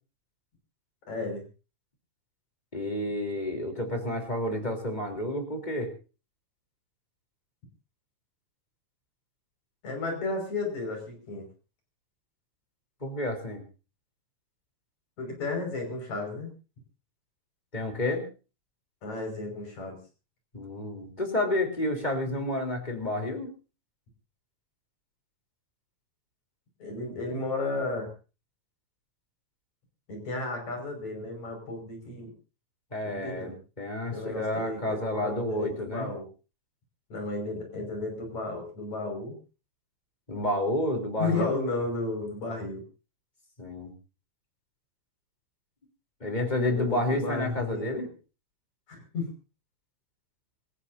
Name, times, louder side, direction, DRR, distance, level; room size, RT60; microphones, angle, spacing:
voice 1, 1.1-1.4 9.8-11.5 15.2-16.5 19.0-20.0 26.8-28.1 30.1-32.3 33.0-33.6 34.1-36.3 37.1-39.4 41.2-42.8 46.7-48.1 48.9-49.3, left 3 dB, 70° left, 3 dB, 7.0 m, -33 dB
voice 2, 2.7-5.9 13.0-13.6 17.7-18.2 20.5-23.5 32.9-33.5 33.8-36.1 40.3-41.6 43.6-43.9 46.2-48.1, left 1 dB, 15° left, 4 dB, 3.5 m, -30 dB
27.0 x 15.0 x 2.7 m, 0.34 s
omnidirectional pair, 3.4 m